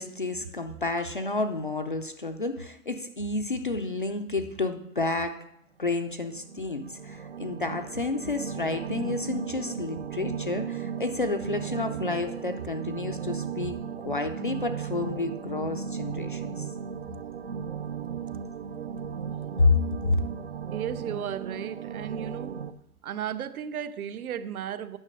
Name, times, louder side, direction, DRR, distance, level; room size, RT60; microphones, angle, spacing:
voice 1, 0.0-5.4 5.8-16.7 19.6-19.8 20.0-20.2, left 3 dB, 35° left, 0.4 m, -30 dB
sound 1, 6.3-22.7, right 6 dB, 45° right, 0.5 m, -36 dB
voice 2, 20.7-22.6 23.0-25.0, right 9 dB, 65° right, 0.8 m, -34 dB
9.7 x 5.9 x 6.3 m
hypercardioid pair, 175°, 46 cm